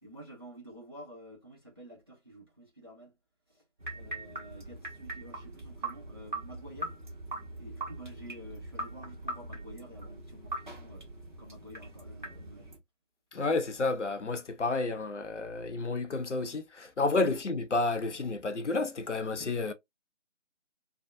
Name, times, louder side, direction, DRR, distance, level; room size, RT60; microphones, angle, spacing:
voice 1, 0.0-3.1 3.5-3.6 3.9-7.0 7.5-12.7, right 1 dB, 20° right, 0.7 m, -50 dB
sound 1, 3.8-12.8, right 2 dB, 40° right, 1.0 m, -41 dB
voice 2, 13.3-19.7, left 3 dB, 70° left, 0.7 m, -30 dB
3.4 x 2.2 x 2.6 m
figure-of-eight pair, 160°, 37 cm